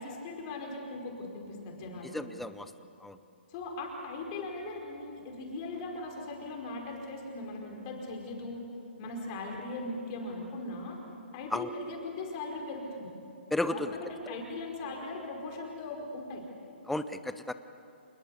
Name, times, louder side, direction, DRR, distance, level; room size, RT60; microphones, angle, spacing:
voice 1, 0.0-2.1 3.5-8.6 9.0-11.0 11.3-13.1 13.6-16.4, left 2 dB, 30° left, 0 dB, 5.1 m, -39 dB
voice 2, 2.1-2.7 3.0-3.2 11.5-11.7 13.5-14.0 14.3-14.4 16.8-17.5, left 1 dB, ahead, 11 dB, 0.7 m, -33 dB
28.0 x 20.5 x 8.4 m, 2.7 s
hypercardioid pair, 155°, 6 cm